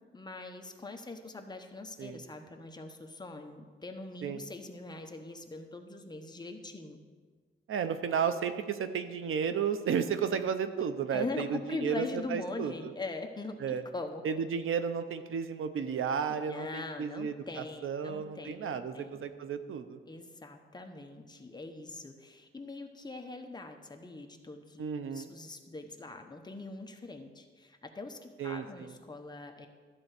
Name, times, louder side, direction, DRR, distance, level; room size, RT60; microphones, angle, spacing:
voice 1, 0.1-7.0 11.1-14.2 16.3-19.2 20.1-24.8 25.1-29.7, left 3 dB, 20° left, 4 dB, 0.9 m, -42 dB
voice 2, 7.7-12.9 13.6-13.8 14.2-20.0 24.8-25.3 28.4-28.9, right 7 dB, 85° right, 10 dB, 0.7 m, -33 dB
13.0 x 4.4 x 8.2 m, 1.5 s
wide cardioid pair, 145°, 21 cm